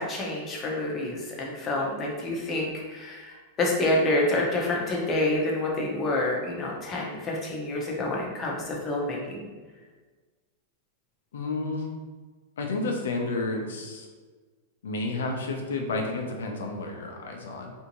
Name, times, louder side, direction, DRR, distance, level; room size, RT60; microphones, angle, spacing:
voice 1, 0.0-9.5, left 1 dB, 25° left, -2 dB, 0.8 m, -28 dB
voice 2, 11.3-11.9 12.6-14.1 14.8-17.7, left 3 dB, 90° left, 2 dB, 0.6 m, -31 dB
3.4 x 2.7 x 3.0 m, 1.4 s
supercardioid pair, 140°, 0 cm